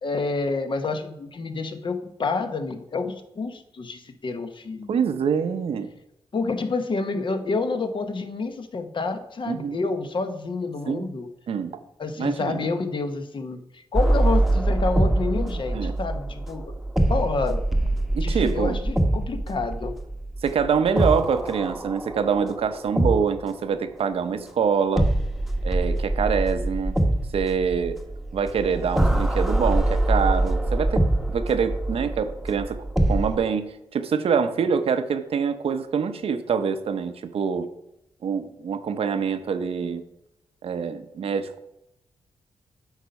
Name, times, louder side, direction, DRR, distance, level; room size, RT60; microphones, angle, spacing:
voice 1, 0.0-5.0 6.3-11.3 12.0-16.7 17.1-17.6 18.2-20.0, left 3 dB, 55° left, 7 dB, 0.9 m, -28 dB
voice 2, 4.9-5.9 9.5-9.8 10.9-11.1 11.5-11.8 12.2-12.6 15.7-15.9 18.1-18.8 20.4-25.1 25.6-27.0 27.3-28.0 28.3-37.7 38.2-40.0 40.6-41.7, right 6 dB, 70° right, 10 dB, 0.7 m, -25 dB
sound 1, 13.9-23.7 25.0-33.4, right 1 dB, ahead, 0.9 m, -24 dB
8.3 x 4.1 x 5.3 m, 0.85 s
cardioid pair, 60°, 10 cm